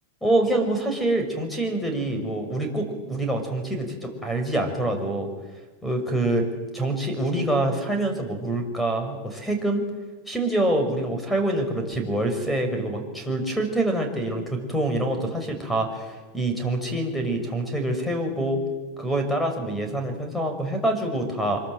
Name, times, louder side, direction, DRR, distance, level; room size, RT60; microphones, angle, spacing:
voice 1, 0.2-5.3 5.8-6.4 6.7-9.8 10.3-18.6 19.0-21.6, right 1 dB, 5° left, 5 dB, 5.9 m, -26 dB
26.0 x 23.0 x 8.1 m, 1.2 s
supercardioid pair, 135°, 0 cm